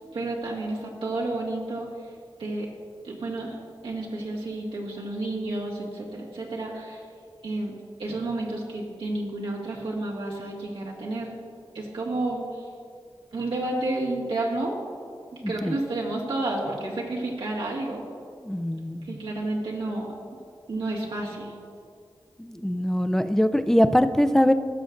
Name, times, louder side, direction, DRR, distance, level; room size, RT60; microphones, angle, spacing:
voice 1, 0.1-1.9 2.4-2.7 3.0-3.6 3.8-7.0 7.4-7.7 8.0-11.3 11.7-12.7 13.3-14.8 15.3-18.0 19.1-20.1 20.7-21.5, right 2 dB, 90° right, -4 dB, 1.8 m, -30 dB
voice 2, 15.4-15.8 18.4-19.2 22.4-24.5, equal, 5° left, 10 dB, 0.4 m, -22 dB
16.5 x 6.9 x 2.6 m, 2.2 s
wide cardioid pair, 90°, 9 cm